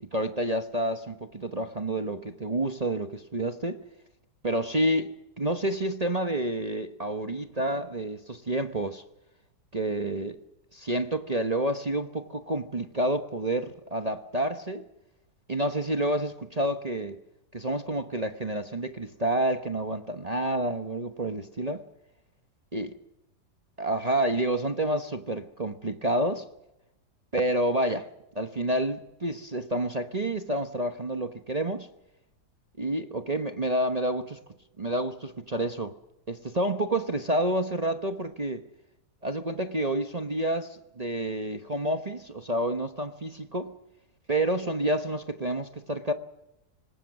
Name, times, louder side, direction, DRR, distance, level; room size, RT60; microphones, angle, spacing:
voice 1, 0.0-3.8 4.4-9.0 9.7-10.4 10.7-14.8 15.5-17.2 17.5-21.8 22.7-22.9 23.8-26.4 27.3-28.1 28.3-31.9 32.8-34.4 34.8-35.9 36.3-38.6 39.2-43.7 44.3-46.1, right 1 dB, 30° right, 6 dB, 1.0 m, -29 dB
26.0 x 20.0 x 6.2 m, 0.90 s
omnidirectional pair, 1.8 m